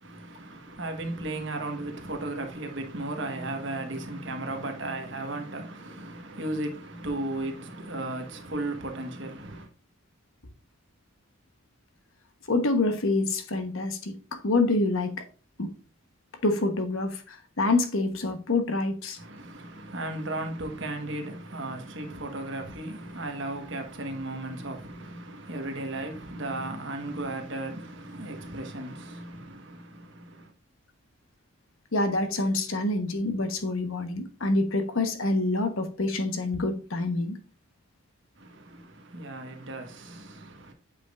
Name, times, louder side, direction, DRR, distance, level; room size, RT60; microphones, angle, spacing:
voice 1, 0.0-9.7 19.1-30.5 38.3-40.7, right 2 dB, 55° right, 1.3 m, -35 dB
voice 2, 12.5-14.1 14.4-15.2 15.6-15.7 16.4-19.2 31.9-37.4, left 2 dB, 70° left, 1.1 m, -26 dB
8.6 x 5.2 x 2.5 m
head